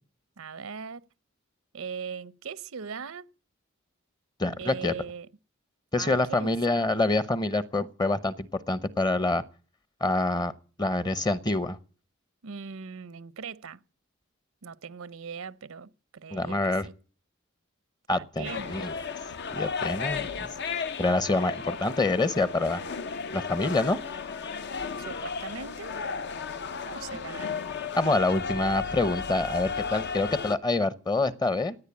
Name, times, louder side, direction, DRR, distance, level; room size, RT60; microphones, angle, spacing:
voice 1, 0.4-1.0 1.7-3.3 4.6-5.3 6.0-6.8 12.4-13.8 14.6-16.9 18.1-18.9 25.0-26.0 26.8-27.7, right 6 dB, 80° right, 0.7 m, -40 dB
voice 2, 4.4-4.9 5.9-9.4 10.0-10.5 10.8-11.8 16.3-16.9 18.1-18.9 19.5-20.5 21.0-22.8 23.3-24.0 28.0-31.8, left 2 dB, 20° left, 0.8 m, -26 dB
sound 1, 18.4-30.6, left 5 dB, 55° left, 0.7 m, -34 dB
17.5 x 9.2 x 8.5 m
head